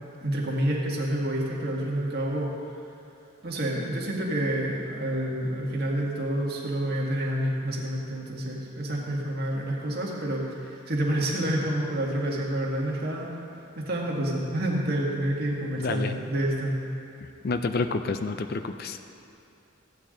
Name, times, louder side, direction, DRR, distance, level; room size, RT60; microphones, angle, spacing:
voice 1, 0.2-2.5 3.4-13.3 13.8-16.8, right 1 dB, 50° right, -3 dB, 1.7 m, -28 dB
voice 2, 15.8-16.2 17.4-19.0, left 3 dB, 45° left, 8 dB, 0.4 m, -29 dB
14.5 x 9.2 x 3.8 m, 2.7 s
head